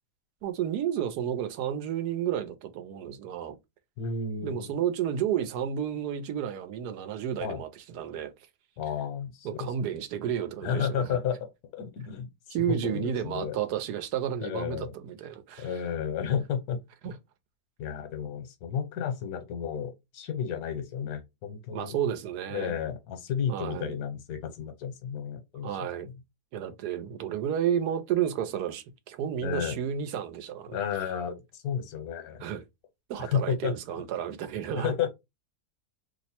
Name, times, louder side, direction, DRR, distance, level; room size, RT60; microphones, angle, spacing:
voice 1, 0.4-3.6 4.4-8.3 9.4-11.2 12.5-15.7 17.0-17.2 21.7-22.7 23.5-23.9 25.6-26.1 26.5-30.8 32.4-32.6 33.1-34.9, right 9 dB, 90° right, 1.2 m, -31 dB
voice 2, 4.0-4.8 7.4-7.6 8.8-9.7 10.6-12.3 12.7-13.6 14.4-14.9 15.6-16.8 17.8-22.0 22.5-25.8 29.4-29.8 30.7-32.4 33.2-33.8 34.7-35.1, left 7 dB, 75° left, 1.2 m, -32 dB
2.9 x 2.1 x 4.1 m
omnidirectional pair, 1.7 m